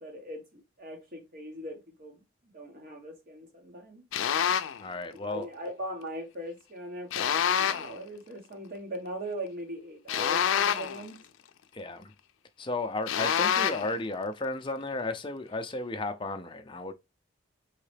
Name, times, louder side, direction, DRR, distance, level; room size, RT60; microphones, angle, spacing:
voice 1, 0.0-2.2 2.5-4.0 5.1-11.2, equal, 45° right, 1.4 m, -40 dB
sound 1, 4.1-4.8 7.1-8.0 10.1-11.1 13.1-13.9, left 8 dB, 80° left, 0.4 m, -27 dB
voice 2, 4.8-5.5 11.7-12.1 12.6-16.9, left 2 dB, 25° left, 0.5 m, -34 dB
4.7 x 3.2 x 3.3 m
head